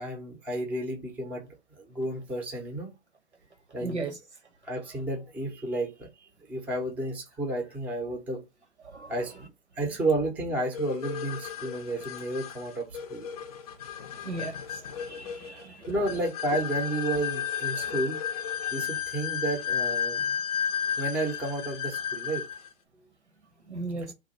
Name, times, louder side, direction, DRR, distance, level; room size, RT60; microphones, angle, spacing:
voice 1, 0.0-1.5 1.8-2.9 3.7-4.1 4.6-8.4 9.1-9.3 9.8-13.3 15.5-18.2 18.7-20.4 21.0-22.5, right 2 dB, 5° right, 0.6 m, -32 dB
voice 2, 3.8-4.1 8.9-9.1 14.2-14.5 15.0-15.8 23.7-24.1, right 3 dB, 85° right, 1.4 m, -35 dB
sound 1, 10.7-22.7, left 8 dB, 35° left, 0.5 m, -33 dB
3.0 x 2.3 x 4.1 m
figure-of-eight pair, 125°, 33 cm